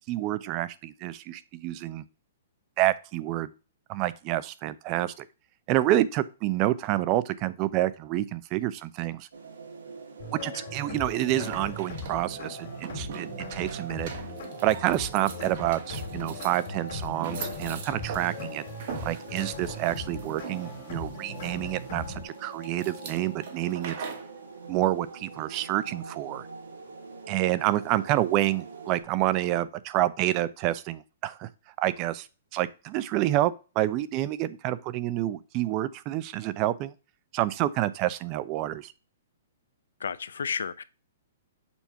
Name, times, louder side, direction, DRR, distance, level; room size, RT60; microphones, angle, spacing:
voice 1, 0.1-2.0 2.8-3.5 3.9-5.3 5.7-9.3 10.3-14.1 14.6-18.6 19.0-24.0 24.7-26.5 27.3-31.5 31.8-32.3 32.5-36.9 37.3-38.9, right 14 dB, 35° right, 0.5 m, -28 dB
sound 1, 9.3-29.0, right 4 dB, 85° right, 2.0 m, -44 dB
sound 2, 10.2-22.2, left 3 dB, 60° left, 2.2 m, -39 dB
sound 3, 11.1-24.3, right 6 dB, 55° right, 1.5 m, -42 dB
voice 2, 40.0-40.8, left 6 dB, 85° left, 0.5 m, -32 dB
7.0 x 2.8 x 5.7 m
hypercardioid pair, 140°, 0 cm